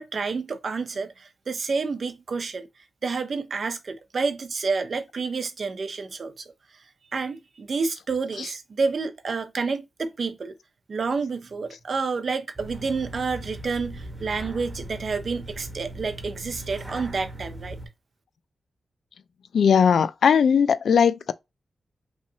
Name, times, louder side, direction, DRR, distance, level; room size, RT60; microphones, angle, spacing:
voice 1, 0.0-2.7 3.0-6.5 7.1-10.5 10.9-17.8, right 4 dB, 45° right, 0.7 m, -29 dB
sound 1, 12.6-17.9, right 1 dB, 20° right, 1.0 m, -39 dB
voice 2, 19.5-21.3, left 7 dB, 85° left, 0.4 m, -19 dB
5.5 x 3.2 x 2.7 m
wide cardioid pair, 170°, 0 cm